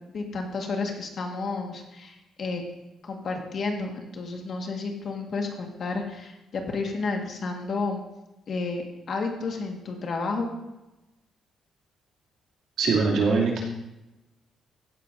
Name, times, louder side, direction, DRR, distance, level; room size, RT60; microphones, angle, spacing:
voice 1, 0.1-2.6 3.0-8.0 8.5-10.5, left 3 dB, 40° left, 2 dB, 1.6 m, -31 dB
voice 2, 12.8-13.6, right 4 dB, 65° right, -2 dB, 2.6 m, -22 dB
15.5 x 10.5 x 2.6 m, 0.98 s
cardioid pair, 175°, 0 cm